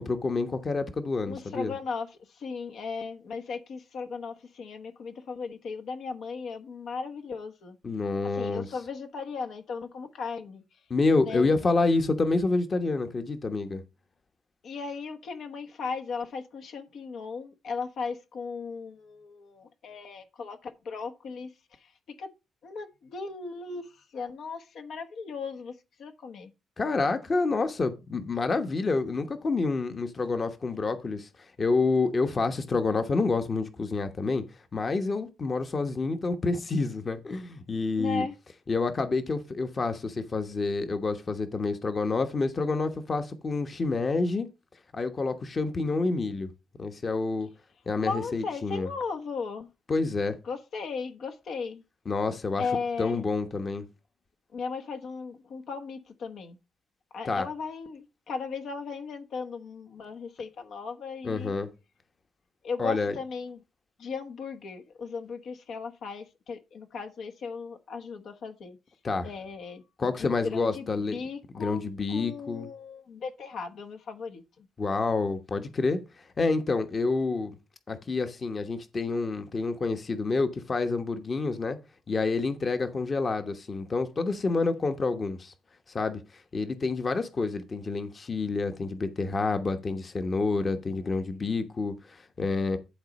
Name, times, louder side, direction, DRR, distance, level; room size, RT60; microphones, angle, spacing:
voice 1, 0.0-1.7 7.8-8.7 10.9-13.8 26.8-31.3 31.6-34.4 34.7-38.2 38.7-44.5 44.9-46.5 46.8-47.5 47.9-48.9 49.9-50.3 52.1-52.6 53.0-53.8 57.3-57.5 61.2-61.7 62.8-63.1 69.0-69.3 70.0-71.2 71.5-72.7 74.8-76.0 76.4-77.6 77.9-81.8 82.1-85.5 85.9-86.2 86.5-92.8, left 3 dB, 35° left, 1.2 m, -28 dB
voice 2, 1.3-7.8 8.3-10.6 11.2-11.5 14.6-21.9 22.2-22.3 22.6-26.5 38.0-38.3 48.0-49.7 50.4-51.8 52.6-53.3 54.5-56.6 57.1-61.5 62.6-63.6 64.0-68.8 69.2-69.8 70.2-74.7, left 5 dB, 65° left, 1.2 m, -37 dB
11.5 x 4.0 x 5.3 m
cardioid pair, 90°, 0 cm